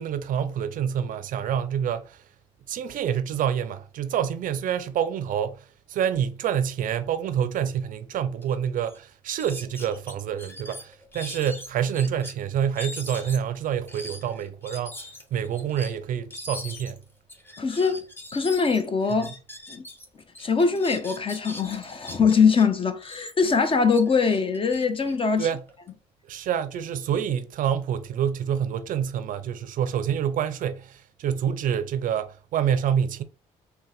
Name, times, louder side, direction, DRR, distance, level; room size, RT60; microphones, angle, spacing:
voice 1, 0.0-2.2 2.7-17.0 25.4-25.6 26.3-33.2, right 8 dB, 60° right, 0.4 m, -27 dB
sound 1, 8.4-8.5 8.8-9.0 9.4-12.3 12.7-20.1 20.3-22.6 23.0-25.9, left 1 dB, 15° left, 1.1 m, -41 dB
voice 2, 17.6-18.1 18.3-19.3 19.7-19.9 20.4-25.5, left 5 dB, 35° left, 0.7 m, -22 dB
3.9 x 2.2 x 3.9 m
supercardioid pair, 60°, 15 cm